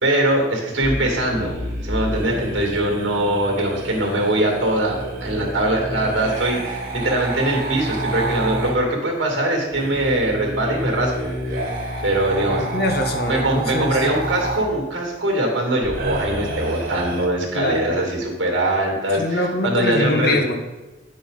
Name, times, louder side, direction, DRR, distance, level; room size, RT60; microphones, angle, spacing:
voice 1, 0.0-1.6 1.8-11.6 12.0-12.7 13.2-20.4, right 1 dB, 75° right, 0 dB, 2.4 m, -22 dB
sound 1, 0.8-8.7 9.7-14.7 15.8-17.3, right 1 dB, 50° right, 2.3 m, -28 dB
voice 2, 12.5-14.0 17.5-17.8 19.1-20.6, left 1 dB, 55° left, 4 dB, 1.1 m, -23 dB
9.1 x 6.5 x 3.9 m, 1.1 s
head